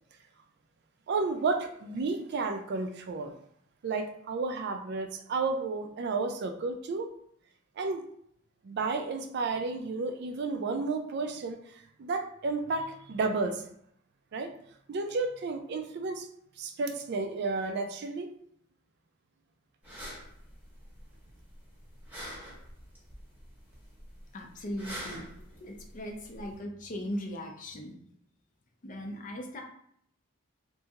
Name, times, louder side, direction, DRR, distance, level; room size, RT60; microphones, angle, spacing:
voice 1, 1.1-3.3 3.8-7.1 7.8-8.0 8.6-11.6 12.0-13.6 14.3-14.5 14.9-16.3 16.6-18.3, right 3 dB, 55° right, 5 dB, 0.4 m, -32 dB
sound 1, 19.8-26.6, equal, 10° right, 0.8 m, -46 dB
voice 2, 24.3-25.3 25.6-28.0 28.8-29.6, equal, 40° left, 2 dB, 0.5 m, -38 dB
2.8 x 2.6 x 2.4 m, 0.68 s
head